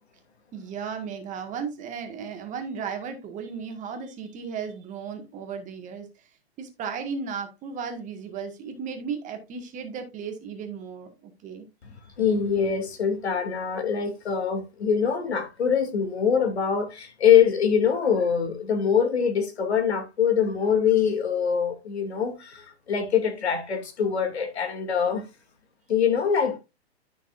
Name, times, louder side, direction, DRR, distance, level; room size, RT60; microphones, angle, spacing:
voice 1, 0.5-6.3 6.6-11.7, right 6 dB, 25° right, 1.8 m, -35 dB
voice 2, 11.8-25.3 25.9-26.6, left 7 dB, 75° left, 2.6 m, -24 dB
12.5 x 6.3 x 2.5 m
hypercardioid pair, 130°, 32 cm